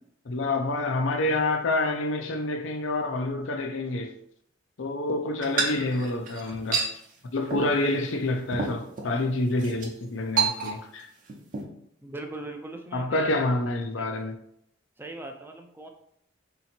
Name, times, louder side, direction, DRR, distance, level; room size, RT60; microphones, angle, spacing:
voice 1, 0.3-4.1 4.8-6.9 7.3-11.1 12.9-14.3, left 2 dB, 75° left, 0.6 m, -27 dB
sound 1, 5.4-6.9 7.5-7.8 8.1-8.2 8.5-9.1 9.6-9.9 10.4-11.0 11.3-11.6, right 5 dB, 45° right, 0.8 m, -28 dB
voice 2, 12.0-13.4 14.0-14.1 15.0-15.9, right 2 dB, 10° right, 0.4 m, -40 dB
3.8 x 2.8 x 4.3 m
head